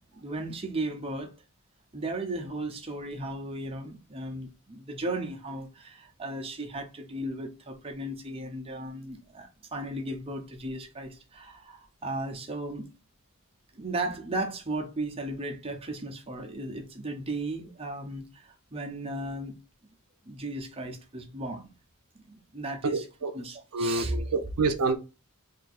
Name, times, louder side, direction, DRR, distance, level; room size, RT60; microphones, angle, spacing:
voice 1, 0.2-1.3 1.9-12.9 13.7-19.6 20.2-21.7 22.2-23.1 23.3-24.4, right 2 dB, 25° right, 0.8 m, -35 dB
voice 2, 22.8-23.3 23.7-24.1 24.3-25.0, right 3 dB, 80° right, 0.5 m, -27 dB
3.5 x 2.7 x 4.1 m
head